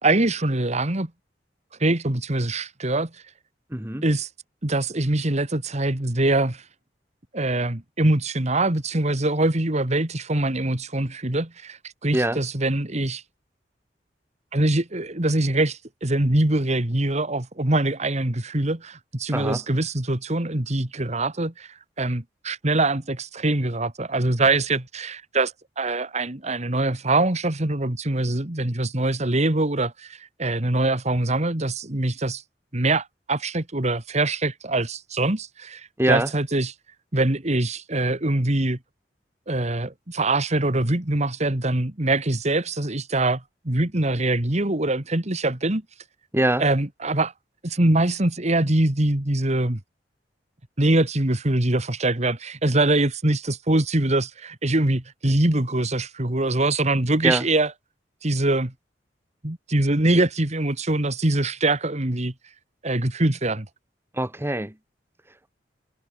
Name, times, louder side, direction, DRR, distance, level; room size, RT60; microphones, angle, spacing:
voice 1, 0.0-1.1 1.8-3.1 4.0-4.3 4.6-6.6 7.3-13.2 14.5-21.7 22.0-32.4 32.7-36.7 37.1-38.8 39.5-45.8 46.6-47.3 47.6-49.8 50.8-57.7 58.2-58.7 59.4-62.3 62.8-63.7, right 2 dB, 40° right, 2.1 m, -23 dB
voice 2, 3.7-4.0 12.1-12.4 19.3-19.6 36.0-36.3 46.3-46.6 57.2-57.4 64.2-64.7, right 1 dB, 15° right, 1.9 m, -23 dB
head